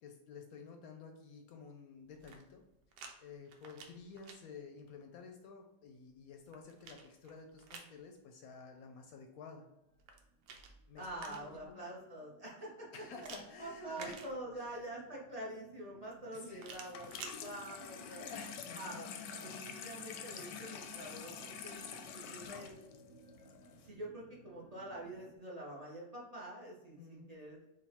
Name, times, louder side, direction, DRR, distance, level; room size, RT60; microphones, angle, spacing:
voice 1, 0.0-2.6 3.2-9.7 10.9-11.4 11.7-11.8 12.9-14.3 14.5-14.8 16.3-16.8 18.2-19.0 27.0-27.3, left 5 dB, 70° left, 4 dB, 0.9 m, -52 dB
sound 1, 2.1-3.1 3.5-4.4 6.1-8.0 9.9-11.7 13.2-14.8 16.6-17.4, right 5 dB, 90° right, 1.3 m, -52 dB
sound 2, 9.8-25.4, right 4 dB, 70° right, 1.0 m, -63 dB
voice 2, 11.0-12.9 13.1-13.3 13.6-18.3 18.7-19.1 19.4-22.7 23.8-27.7, right 1 dB, 30° right, -4 dB, 0.7 m, -46 dB
Water tap faucet / Sink (filling or washing), 16.8-23.9, left 6 dB, 85° left, 1.2 m, -47 dB
5.5 x 2.4 x 3.4 m, 0.93 s
omnidirectional pair, 1.8 m